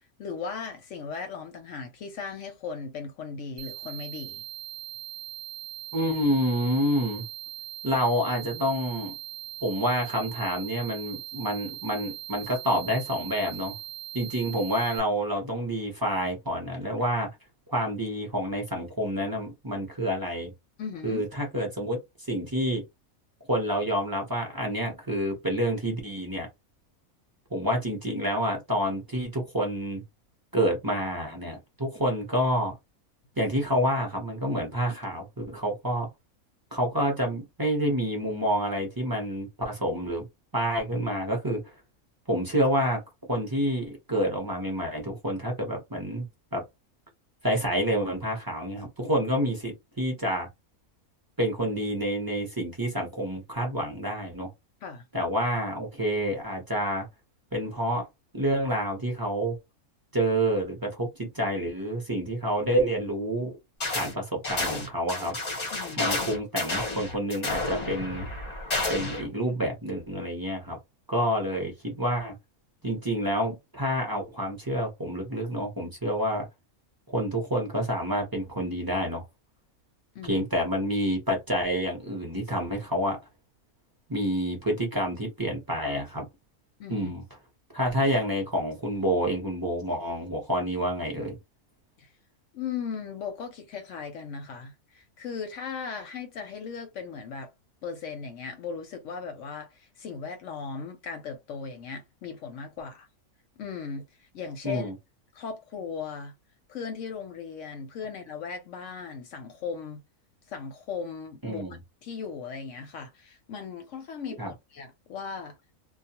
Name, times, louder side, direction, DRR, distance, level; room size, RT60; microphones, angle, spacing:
voice 1, 0.2-4.4 20.8-21.2 54.8-55.1 65.7-66.1 80.1-80.4 86.8-87.1 92.0-92.1 92.5-97.5 97.8-103.1 103.6-104.9 105.3-106.3 106.7-110.0 110.5-111.6 112.0-115.6, left 6 dB, 65° left, 0.8 m, -37 dB
sound 1, 3.6-15.0, right 12 dB, 80° right, 1.1 m, -40 dB
voice 2, 5.9-7.2 7.8-9.1 9.6-13.7 14.1-17.3 17.7-20.5 21.0-22.0 22.3-22.8 23.5-26.5 27.5-30.0 30.5-32.7 33.4-36.1 36.7-40.3 40.5-41.6 42.3-43.0 43.3-46.3 46.5-46.6 47.4-50.5 51.4-54.5 55.1-57.1 57.5-58.1 58.3-59.6 60.1-63.5 63.9-65.4 66.0-68.3 68.9-70.8 71.1-72.3 72.8-76.5 77.1-79.2 80.2-83.2 84.1-86.3 86.9-87.2 87.7-91.4 104.6-104.9 111.4-111.8 114.4-114.5, equal, 20° right, 0.6 m, -28 dB
sound 2, 63.8-64.1 64.4-69.3, left 2 dB, 35° left, 0.7 m, -31 dB
2.3 x 2.2 x 2.8 m
omnidirectional pair, 1.5 m